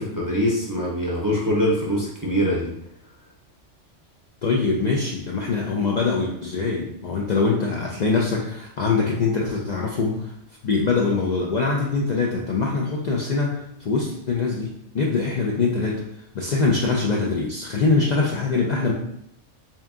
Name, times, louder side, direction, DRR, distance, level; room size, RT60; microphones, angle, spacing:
voice 1, 0.0-2.7, equal, 25° right, -5 dB, 0.4 m, -23 dB
voice 2, 4.4-10.3 10.6-16.0 16.3-18.9, left 4 dB, 85° left, -1 dB, 0.3 m, -23 dB
3.4 x 2.8 x 3.6 m, 0.78 s
omnidirectional pair, 1.3 m